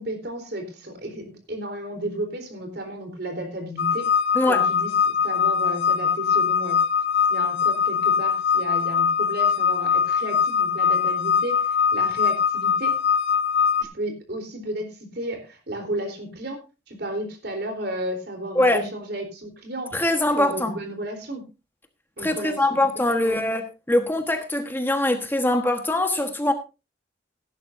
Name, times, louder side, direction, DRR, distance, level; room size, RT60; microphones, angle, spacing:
voice 1, 0.0-4.1 4.5-6.8 7.3-13.0 13.8-16.6 16.9-19.9 20.3-21.4 22.2-23.4, right 1 dB, 60° right, 3.8 m, -33 dB
sound 1, 3.8-13.8, left 7 dB, 80° left, 1.3 m, -22 dB
voice 2, 18.5-18.9 19.9-20.7 22.2-26.5, left 1 dB, 10° left, 1.3 m, -22 dB
16.5 x 11.0 x 2.6 m
head